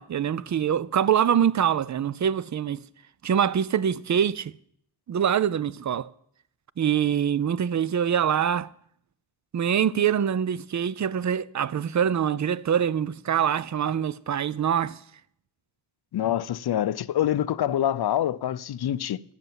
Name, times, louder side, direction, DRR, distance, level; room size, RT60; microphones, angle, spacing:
voice 1, 0.0-2.8 3.2-4.5 5.1-6.1 6.8-8.7 9.5-15.0, right 8 dB, 40° right, 0.5 m, -24 dB
voice 2, 16.1-19.2, left 11 dB, 55° left, 0.6 m, -26 dB
13.5 x 8.2 x 9.3 m
cardioid pair, 100°, 47 cm